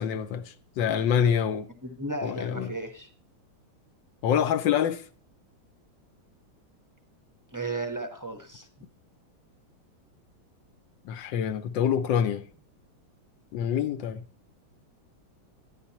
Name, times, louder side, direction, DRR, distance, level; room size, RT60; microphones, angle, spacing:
voice 1, 0.0-1.7 2.2-2.7 4.2-5.0 11.0-12.5 13.5-14.2, left 8 dB, 70° left, 1.2 m, -26 dB
voice 2, 1.8-3.1 7.5-8.7, right 2 dB, 20° right, 0.4 m, -34 dB
12.0 x 10.0 x 2.8 m
omnidirectional pair, 2.3 m